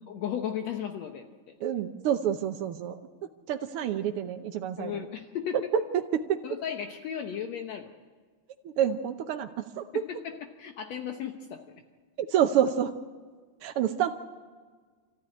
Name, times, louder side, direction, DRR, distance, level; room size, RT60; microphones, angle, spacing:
voice 1, 0.1-1.6 4.8-5.7 6.4-7.9 9.9-11.8, left 9 dB, 70° left, 4 dB, 2.2 m, -35 dB
voice 2, 1.6-3.0 3.5-5.1 5.5-6.4 8.6-10.0 12.2-12.9 13.6-14.2, right 9 dB, 65° right, 5 dB, 1.4 m, -28 dB
28.0 x 14.5 x 9.9 m, 1.5 s
omnidirectional pair, 3.4 m